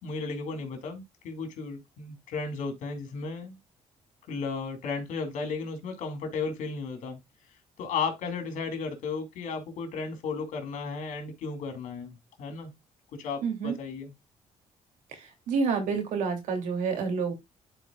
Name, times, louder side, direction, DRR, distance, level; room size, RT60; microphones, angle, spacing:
voice 1, 0.0-3.6 4.3-7.2 7.8-12.7 13.2-14.1, left 4 dB, 80° left, 2.3 m, -34 dB
voice 2, 13.4-13.7 15.5-17.3, right 5 dB, 90° right, 2.7 m, -28 dB
11.5 x 4.6 x 2.3 m
cardioid pair, 115°, 13 cm